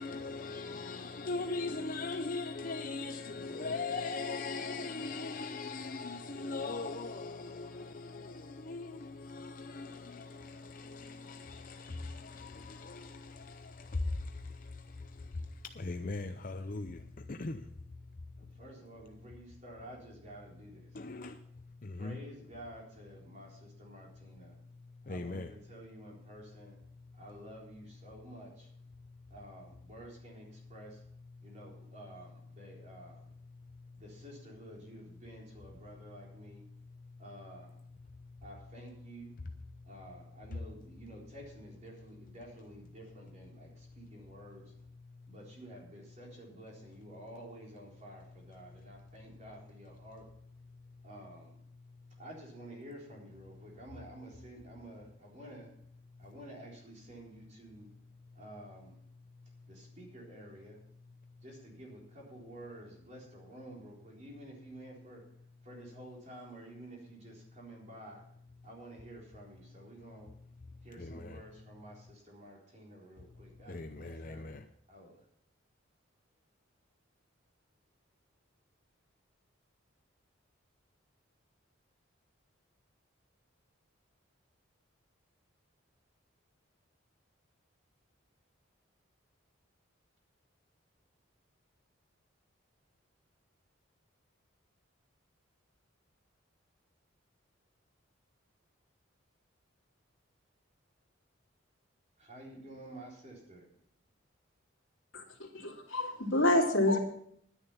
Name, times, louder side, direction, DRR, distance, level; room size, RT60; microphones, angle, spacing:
voice 1, 0.0-15.3 15.6-17.0 17.3-17.7 20.9-21.4 21.8-22.2 25.1-25.5 71.0-71.4 73.7-74.6, left 3 dB, 40° left, 0.6 m, -40 dB
voice 2, 18.6-20.9 22.0-24.5 25.1-26.8 27.2-28.7 29.3-31.0 31.4-33.2 34.0-36.6 37.2-37.7 38.4-39.3 39.9-44.6 45.3-50.2 51.0-51.5 52.2-55.7 56.2-57.9 58.4-58.9 59.7-60.8 61.4-65.2 65.6-68.2 68.6-70.3 70.8-74.5 74.9-75.1 102.2-103.6, right 1 dB, 35° right, 3.9 m, -51 dB
voice 3, 105.5-107.0, left 1 dB, 70° left, 2.6 m, -27 dB
11.0 x 10.0 x 5.6 m
head